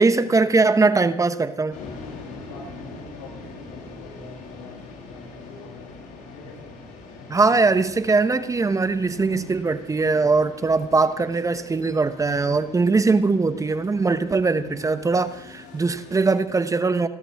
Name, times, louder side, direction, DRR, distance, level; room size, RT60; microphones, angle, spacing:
voice 1, 0.0-1.8 7.3-17.1, right 3 dB, 20° right, 12 dB, 1.0 m, -21 dB
sound 1, 1.7-16.4, left 3 dB, 55° left, 7.0 m, -43 dB
voice 2, 2.0-6.9 7.2-7.4 9.1-9.5 14.6-15.0, left 2 dB, 85° left, -3 dB, 7.9 m, -45 dB
30.0 x 13.0 x 3.6 m, 0.74 s
supercardioid pair, 90°, 16 cm